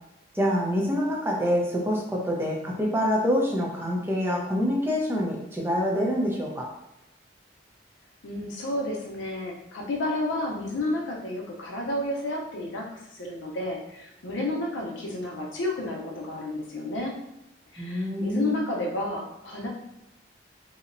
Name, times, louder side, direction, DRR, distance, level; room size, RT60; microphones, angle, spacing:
voice 1, 0.3-6.7 17.8-18.6, equal, 15° right, -2 dB, 0.4 m, -26 dB
voice 2, 8.2-17.2 17.7-19.7, left 2 dB, 90° left, -1 dB, 0.6 m, -31 dB
2.7 x 2.0 x 2.5 m, 0.87 s
head